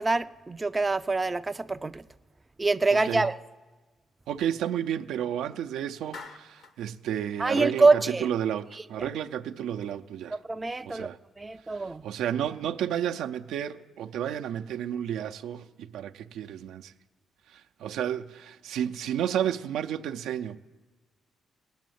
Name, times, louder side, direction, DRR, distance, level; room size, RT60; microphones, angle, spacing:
voice 1, 0.0-2.0 2.6-3.4 7.4-8.2 10.5-11.1 11.4-12.0, right 3 dB, 20° right, 0.4 m, -25 dB
voice 2, 2.9-3.3 4.3-10.4 10.8-11.2 12.0-16.9 17.5-20.6, right 10 dB, 85° right, 0.5 m, -31 dB
Clapping, 6.1-6.8, left 4 dB, 70° left, 1.3 m, -44 dB
18.0 x 7.2 x 9.2 m
cardioid pair, 90°, 0 cm